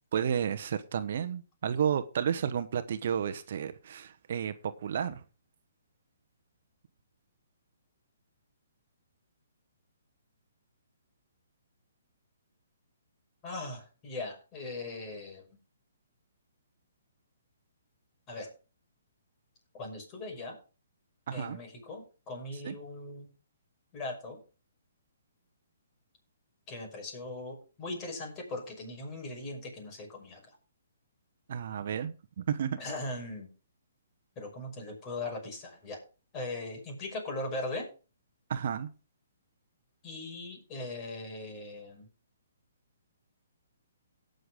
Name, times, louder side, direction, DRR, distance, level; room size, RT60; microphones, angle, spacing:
voice 1, 0.1-5.2 21.3-21.6 22.6-22.7 31.5-32.8 38.5-38.9, right 8 dB, 55° right, 1.0 m, -32 dB
voice 2, 13.4-15.4 18.3-18.5 19.7-20.6 21.3-23.3 23.9-24.4 26.7-30.5 32.8-33.5 34.4-36.0 36.3-37.9 40.0-42.1, left 2 dB, 25° left, 5.7 m, -39 dB
17.5 x 6.7 x 3.7 m
hypercardioid pair, 145°, 0 cm